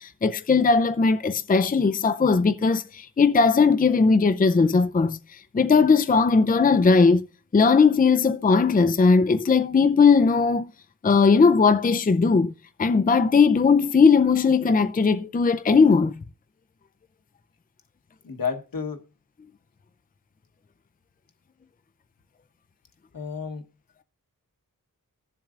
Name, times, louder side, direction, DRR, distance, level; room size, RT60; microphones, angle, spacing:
voice 1, 0.0-7.2 7.5-10.7 11.0-12.5 12.8-16.1, left 4 dB, 25° left, 0.5 m, -19 dB
voice 2, 18.2-19.1 23.1-23.7, left 6 dB, 75° left, 1.2 m, -31 dB
20.0 x 7.3 x 2.4 m
wide cardioid pair, 85°, 35 cm